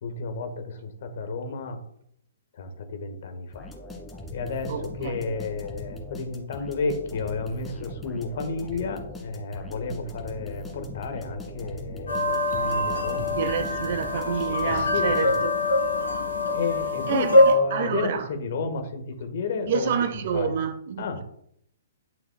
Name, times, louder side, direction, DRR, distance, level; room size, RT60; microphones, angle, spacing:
voice 1, 0.0-1.8 2.5-3.7 4.3-13.3 14.6-15.4 16.5-19.9 20.3-20.6 21.0-21.2, left 4 dB, 55° left, 1.5 m, -32 dB
sound 1, 3.5-15.7, left 1 dB, 10° left, 1.9 m, -41 dB
voice 2, 4.7-5.1 13.4-15.3 17.1-18.3 19.7-21.2, right 7 dB, 50° right, 0.9 m, -28 dB
sound 2, 12.1-17.5, left 2 dB, 75° left, 3.1 m, -24 dB
11.5 x 5.8 x 2.3 m
figure-of-eight pair, 120°, 0 cm